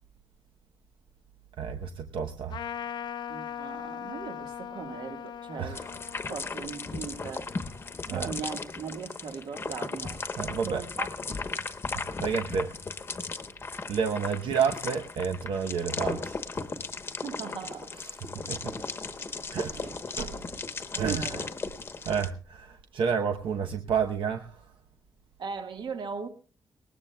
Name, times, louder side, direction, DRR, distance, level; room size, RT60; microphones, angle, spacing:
voice 1, 1.6-2.6 5.5-6.0 8.1-8.3 10.4-10.8 11.9-12.7 13.9-16.4 17.9-18.7 19.5-19.8 20.2-20.4 20.9-21.5 22.0-24.6, right 6 dB, 80° right, 0.9 m, -30 dB
Trumpet, 2.5-8.3, left 9 dB, 60° left, 0.6 m, -40 dB
voice 2, 3.3-5.9 6.3-7.5 8.1-10.2 10.6-11.4 17.2-17.9 19.8-19.9 21.1-21.4 25.4-26.3, right 6 dB, 65° right, 1.5 m, -39 dB
sound 1, 5.7-22.3, left 4 dB, 25° left, 1.0 m, -36 dB
20.5 x 19.0 x 2.3 m
wide cardioid pair, 180°, 9 cm